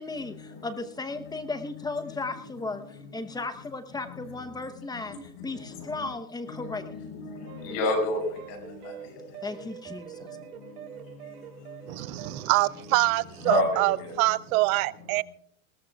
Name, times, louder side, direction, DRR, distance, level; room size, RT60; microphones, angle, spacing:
voice 1, 0.0-2.8 3.1-5.2 5.4-6.8 9.4-10.3, left 3 dB, 10° left, 0.9 m, -35 dB
voice 2, 5.1-5.5 6.5-8.2 8.5-8.6 8.8-8.9 13.4-14.1, left 3 dB, 60° left, 6.3 m, -30 dB
sound 1, 7.5-12.5, right 11 dB, 85° right, 2.3 m, -44 dB
voice 3, 11.9-15.2, right 20 dB, 70° right, 0.6 m, -25 dB
20.5 x 18.0 x 2.4 m
supercardioid pair, 135°, 44 cm